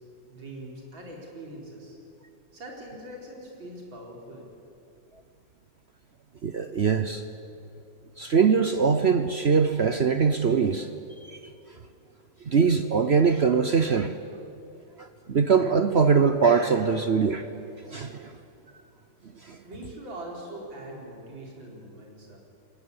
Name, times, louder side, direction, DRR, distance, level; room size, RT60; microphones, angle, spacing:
voice 1, 0.3-2.0 2.5-4.5 19.6-22.4, right 1 dB, 80° right, -1 dB, 5.0 m, -42 dB
voice 2, 6.4-7.2 8.2-10.9 11.2-11.4 12.4-14.2 15.0-17.5 17.9-18.3 19.4-19.6, right 5 dB, 55° right, 9 dB, 0.7 m, -22 dB
21.0 x 18.0 x 9.7 m, 2.6 s
omnidirectional pair, 2.1 m